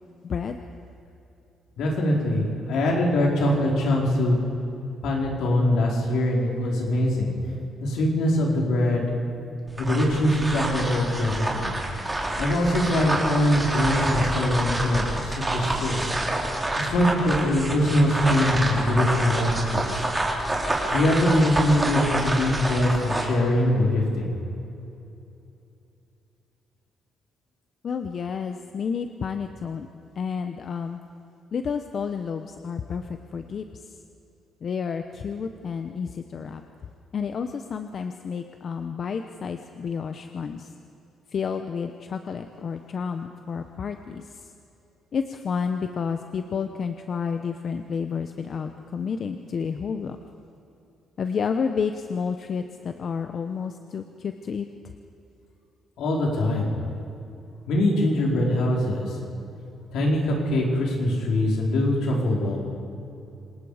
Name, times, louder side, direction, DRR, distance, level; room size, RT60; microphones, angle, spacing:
voice 1, 0.2-0.6 27.8-29.9 30.2-31.0 31.5-34.0 34.6-36.6 37.1-40.7 41.3-44.5 45.1-50.2 51.2-54.7, left 6 dB, 50° left, 7 dB, 0.9 m, -30 dB
voice 2, 1.8-4.4 5.0-7.3 7.8-9.1 9.8-11.7 12.4-16.0 16.8-20.0 20.9-24.4 56.0-56.7 57.7-59.2 59.9-62.6, left 1 dB, 80° left, -1 dB, 4.6 m, -23 dB
sound 1, 9.7-23.3, right 1 dB, 15° right, 4.0 m, -28 dB
27.0 x 19.0 x 5.0 m, 2.8 s
cardioid pair, 90°, 0 cm